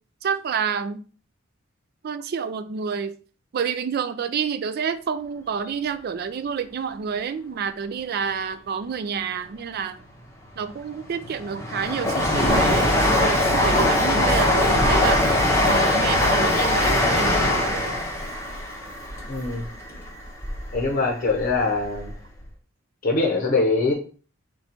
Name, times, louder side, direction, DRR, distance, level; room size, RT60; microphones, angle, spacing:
voice 1, 0.2-1.0 2.0-3.1 3.5-10.0 10.6-15.2 15.7-17.9, right 6 dB, 50° right, 0.3 m, -29 dB
Train, 10.7-20.8 21.2-22.2 22.4-22.5, left 1 dB, 15° left, 0.8 m, -21 dB
voice 2, 19.3-19.7 20.7-22.1 23.0-23.9, left 3 dB, 45° left, 0.7 m, -23 dB
4.0 x 2.3 x 4.2 m
head